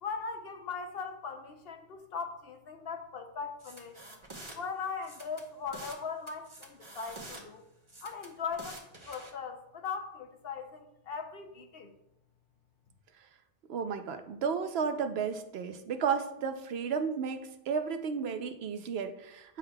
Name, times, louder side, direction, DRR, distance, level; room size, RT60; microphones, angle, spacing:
voice 1, 0.0-4.0 4.5-7.6 8.0-11.9, left 5 dB, 70° left, 5 dB, 0.9 m, -39 dB
sound 1, 3.6-4.6 5.0-6.0 6.3-7.4 7.9-9.3, right 1 dB, 30° right, 1.1 m, -47 dB
voice 2, 13.7-19.6, right 6 dB, 80° right, 8 dB, 0.9 m, -33 dB
9.7 x 5.6 x 2.3 m, 0.83 s
omnidirectional pair, 1.0 m